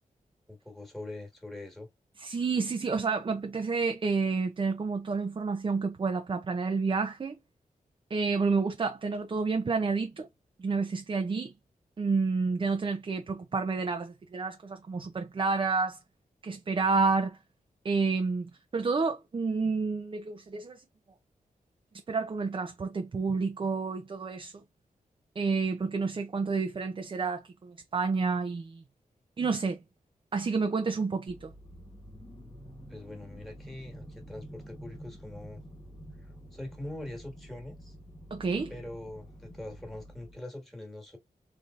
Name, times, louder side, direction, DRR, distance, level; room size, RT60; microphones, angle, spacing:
voice 1, 0.5-1.9 32.9-35.6 36.2-37.9 38.7-41.2, left 1 dB, ahead, 1.5 m, -43 dB
voice 2, 2.2-7.4 8.1-10.3 10.6-11.5 12.0-16.0 16.4-17.4 17.8-20.8 22.1-24.5 25.4-28.8 29.4-29.8 30.3-31.5 38.3-38.7, right 4 dB, 35° right, 0.5 m, -29 dB
sound 1, 31.3-40.4, equal, 25° left, 1.1 m, -48 dB
4.0 x 3.4 x 2.5 m
wide cardioid pair, 130°, 15 cm